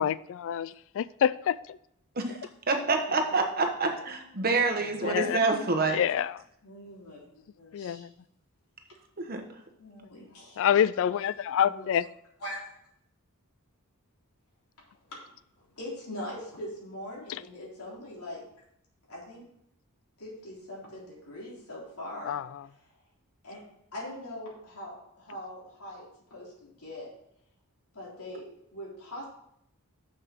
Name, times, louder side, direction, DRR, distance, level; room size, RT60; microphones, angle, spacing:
voice 1, 0.0-1.8 5.0-5.4 5.9-6.4 7.7-8.1 10.6-12.1 17.3-17.4 22.3-22.7, left 9 dB, 60° left, 18 dB, 0.3 m, -27 dB
voice 2, 2.7-6.0 9.2-9.4, right 3 dB, 45° right, 4 dB, 1.2 m, -27 dB
voice 3, 6.6-8.0 9.8-10.7 11.6-11.9 12.4-12.6 15.1-15.2 15.6-18.4 19.1-19.4 20.2-22.4 23.4-23.6 23.9-27.1 27.9-28.5 28.7-29.3, left 1 dB, 85° left, -4 dB, 3.7 m, -42 dB
6.9 x 6.5 x 5.9 m, 0.74 s
head